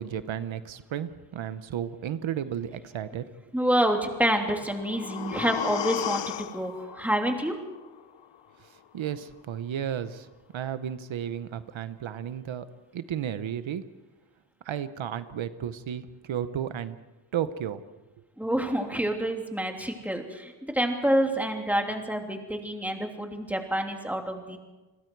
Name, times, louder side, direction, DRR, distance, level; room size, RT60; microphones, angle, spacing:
voice 1, 0.0-3.2 8.6-12.7 12.9-13.9 14.6-17.0 17.3-17.8, right 9 dB, 80° right, 12 dB, 1.0 m, -33 dB
voice 2, 3.5-7.5 18.4-24.6, right 1 dB, 5° right, 3 dB, 3.0 m, -28 dB
sound 1, 4.4-8.4 8.8-8.9, left 11 dB, 65° left, 0.7 m, -35 dB
29.0 x 21.5 x 4.7 m, 1.1 s
wide cardioid pair, 110°, 46 cm